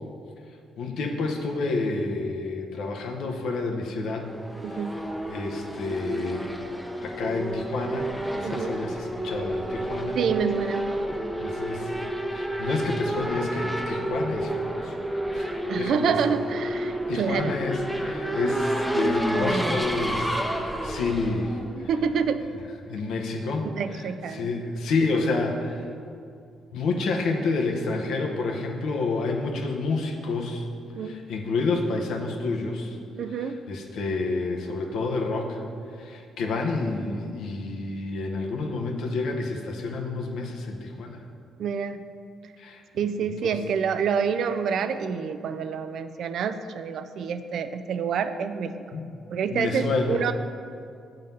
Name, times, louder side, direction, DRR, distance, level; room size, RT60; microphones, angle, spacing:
voice 1, 0.8-4.3 4.7-4.8 5.3-6.7 7.0-10.2 11.4-14.9 15.3-15.5 15.7-16.1 17.1-21.9 22.9-23.7 23.9-24.0 24.3-25.8 26.7-30.7 31.0-33.0 33.4-35.6 36.0-41.2 42.6-42.8 43.2-43.5 48.9-49.1 49.5-50.2, left 3 dB, 75° left, 2 dB, 0.8 m, -29 dB
Race car auto racing / Accelerating revving vroom, 4.2-22.3, right 1 dB, ahead, 0.6 m, -30 dB
voice 2, 4.6-5.0 8.4-8.8 10.1-10.9 15.7-17.6 21.8-22.4 23.6-24.5 31.0-31.1 33.2-33.6 41.6-42.0 42.9-48.7 49.3-50.3, right 6 dB, 70° right, 10 dB, 0.3 m, -27 dB
7.3 x 3.9 x 5.4 m, 2.4 s
cardioid pair, 90°, 0 cm